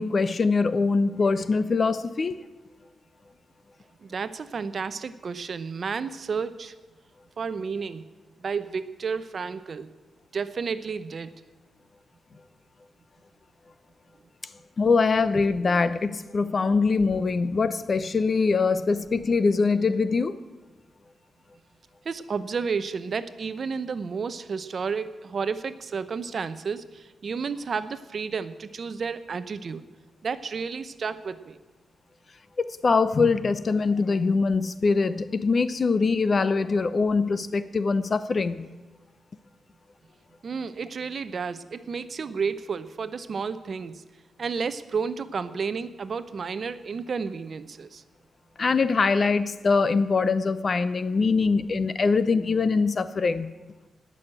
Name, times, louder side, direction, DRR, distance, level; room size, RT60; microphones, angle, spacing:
voice 1, 0.0-2.3 14.8-20.3 32.8-38.6 48.6-53.5, left 4 dB, 40° left, 14 dB, 0.7 m, -23 dB
voice 2, 4.0-6.7 7.4-8.0 8.4-9.9 10.3-11.3 22.0-29.8 30.2-31.6 40.4-44.0 44.4-48.0, right 5 dB, 45° right, 13 dB, 0.7 m, -31 dB
18.5 x 6.4 x 8.9 m, 1.2 s
wide cardioid pair, 130°, 0 cm